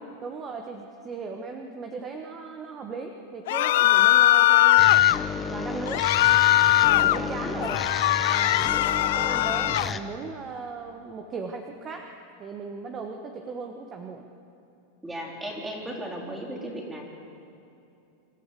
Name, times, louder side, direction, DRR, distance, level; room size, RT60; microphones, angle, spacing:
voice 1, 0.2-4.9 5.5-6.1 6.9-7.8 8.2-12.1 12.4-14.3, right 4 dB, 25° right, 4 dB, 1.3 m, -37 dB
sound 1, 3.5-5.2 5.9-7.2 7.6-9.9, left 15 dB, 70° left, 0.5 m, -20 dB
sound 2, 4.8-10.0, left 5 dB, 15° left, 0.9 m, -33 dB
voice 2, 7.0-7.7 15.0-17.1, right 1 dB, 10° right, -2 dB, 3.8 m, -36 dB
25.5 x 12.5 x 8.4 m, 2.7 s
supercardioid pair, 140°, 0 cm